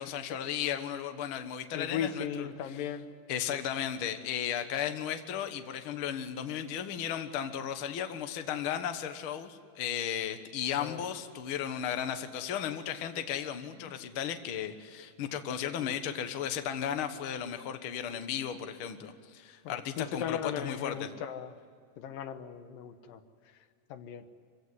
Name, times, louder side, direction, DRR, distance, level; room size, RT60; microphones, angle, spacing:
voice 1, 0.0-2.5 3.3-21.1, left 9 dB, 55° left, 8 dB, 1.7 m, -35 dB
voice 2, 1.7-3.1 10.8-11.0 13.9-14.0 15.8-16.0 19.6-21.5 22.0-23.2 23.9-24.2, left 8 dB, 90° left, 9 dB, 2.9 m, -37 dB
25.5 x 16.5 x 9.7 m, 2.1 s
omnidirectional pair, 3.8 m